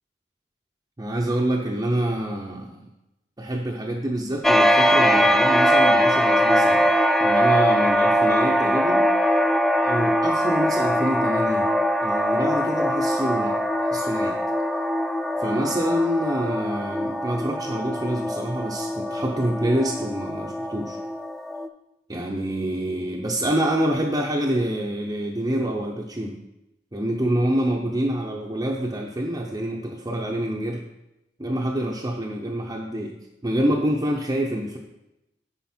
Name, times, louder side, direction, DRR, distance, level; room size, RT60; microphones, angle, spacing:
voice 1, 1.0-2.9 3.4-6.9 7.2-9.0 9.8-11.7 12.0-14.4 15.4-21.0 22.1-26.4 26.9-30.8 31.4-33.1 33.4-34.8, right 1 dB, 20° right, -3 dB, 0.7 m, -26 dB
sound 1, 4.4-21.7, equal, ahead, 0.3 m, -22 dB
9.4 x 5.3 x 4.3 m, 0.91 s
head